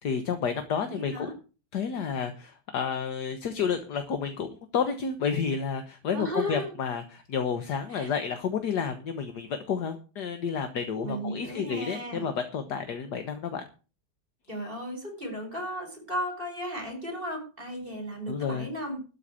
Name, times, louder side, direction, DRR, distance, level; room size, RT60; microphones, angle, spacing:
voice 1, 0.0-1.3 1.7-13.6 18.3-18.7, left 6 dB, 70° left, 8 dB, 1.7 m, -30 dB
voice 2, 0.8-1.3 6.1-6.7 7.9-8.1 11.0-12.3 14.5-19.0, equal, 30° right, 4 dB, 5.2 m, -35 dB
12.5 x 5.7 x 8.7 m, 0.34 s
omnidirectional pair, 1.9 m